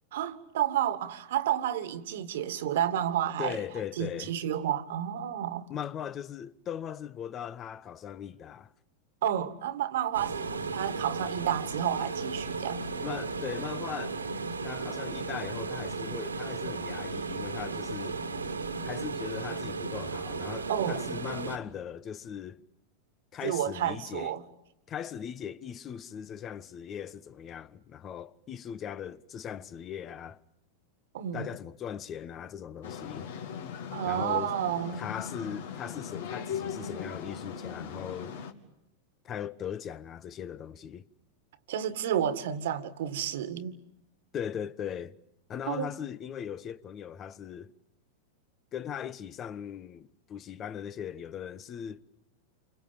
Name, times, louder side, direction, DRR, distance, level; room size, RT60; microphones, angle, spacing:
voice 1, 0.1-3.6 4.0-5.7 9.2-12.8 20.7-21.1 23.4-24.4 31.1-31.5 33.9-35.0 41.7-43.7 45.7-45.9, right 10 dB, 55° right, 2.0 m, -31 dB
voice 2, 3.4-4.3 5.7-8.7 13.0-14.2 14.6-18.2 18.8-22.6 23.3-24.3 24.9-30.4 31.3-33.3 34.0-34.5 34.9-38.4 39.2-41.1 44.3-45.2 45.5-47.7 48.7-52.0, left 9 dB, 30° left, 1.1 m, -39 dB
sound 1, 10.1-21.6, right 4 dB, 75° right, 2.3 m, -35 dB
sound 2, 32.8-38.5, left 7 dB, 55° left, 2.8 m, -39 dB
30.0 x 26.0 x 7.1 m
figure-of-eight pair, 90°, 0 cm